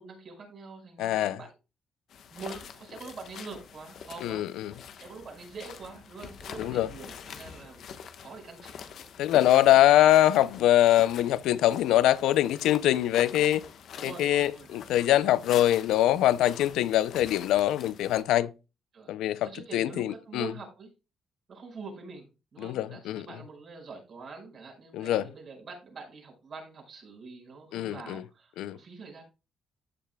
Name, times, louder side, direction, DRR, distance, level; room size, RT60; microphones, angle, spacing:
voice 1, 0.0-1.5 2.3-7.9 8.2-8.8 14.0-14.9 18.9-20.9 21.5-29.2, right 4 dB, 55° right, 5.0 m, -45 dB
voice 2, 1.0-1.4 4.2-4.7 6.6-6.9 9.2-13.7 14.0-18.5 19.1-20.5 22.6-23.3 24.9-25.2 27.7-28.2 28.6-28.8, left 13 dB, 90° left, 0.5 m, -23 dB
sound 1, 2.1-18.2, left 7 dB, 70° left, 1.1 m, -45 dB
14.5 x 6.8 x 2.2 m
cardioid pair, 90°, 0 cm